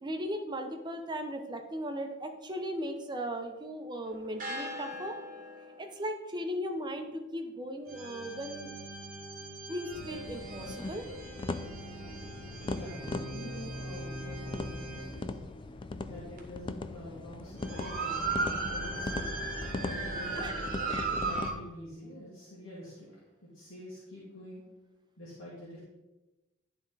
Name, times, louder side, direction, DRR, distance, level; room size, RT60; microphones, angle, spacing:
voice 1, 0.0-5.1 5.8-8.7 9.7-11.0 20.4-20.5 20.9-21.2, equal, 20° right, 4 dB, 0.7 m, -37 dB
sound 1, 4.0-5.9 7.9-15.3 16.4-16.5 17.6-21.5, right 2 dB, 40° right, 1.1 m, -38 dB
sound 2, 9.9-21.5, left 2 dB, 25° left, 0.3 m, -40 dB
voice 2, 12.6-15.5 15.9-19.5 19.8-20.6 21.2-24.6 25.2-25.8, left 1 dB, 65° left, -8 dB, 1.9 m, -46 dB
11.0 x 3.6 x 4.0 m, 1.1 s
head